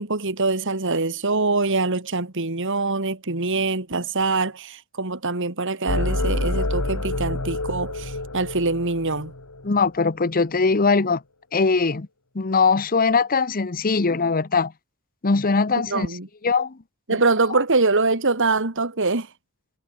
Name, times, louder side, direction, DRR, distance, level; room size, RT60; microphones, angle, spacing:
voice 1, 0.0-9.3 15.9-16.3 17.1-19.3, right 3 dB, 60° right, 2.4 m, -24 dB
sound 1, 5.9-9.9, left 1 dB, 85° left, 3.1 m, -27 dB
voice 2, 9.6-11.2 11.5-12.1 12.3-14.7 15.2-16.1 16.4-16.8, left 4 dB, 40° left, 0.8 m, -21 dB
head